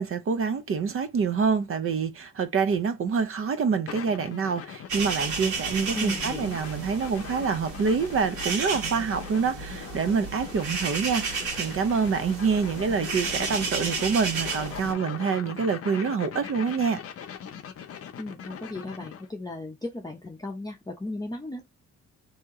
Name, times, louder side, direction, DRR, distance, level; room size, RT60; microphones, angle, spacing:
voice 1, 0.0-17.0, right 5 dB, 45° right, 0.7 m, -26 dB
sound 1, 3.9-19.3, left 8 dB, 50° left, 0.7 m, -41 dB
sound 2, 4.9-14.9, right 4 dB, 75° right, 1.7 m, -33 dB
voice 2, 5.9-6.6 18.2-21.8, left 2 dB, 15° left, 0.7 m, -36 dB
2.9 x 2.8 x 3.6 m
cardioid pair, 90°, 30 cm